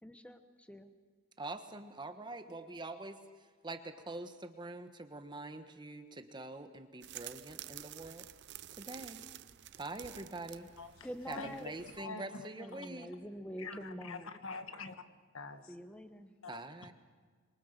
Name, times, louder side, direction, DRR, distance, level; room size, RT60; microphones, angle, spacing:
voice 1, 0.0-0.9 11.0-11.7 12.6-14.3 15.7-16.3, equal, 5° left, 9 dB, 1.0 m, -46 dB
voice 2, 1.4-8.2 8.8-9.3 9.8-10.7 11.3-13.1 16.5-16.9, right 2 dB, 20° right, 8 dB, 1.2 m, -45 dB
sound 1, 7.0-12.0, right 12 dB, 55° right, 0.6 m, -50 dB
voice 3, 10.8-11.1 11.4-12.5 12.7-12.8 13.6-15.0 15.3-15.7 16.4-16.6, left 4 dB, 75° left, 9 dB, 1.5 m, -45 dB
25.5 x 24.0 x 6.7 m, 1.5 s
head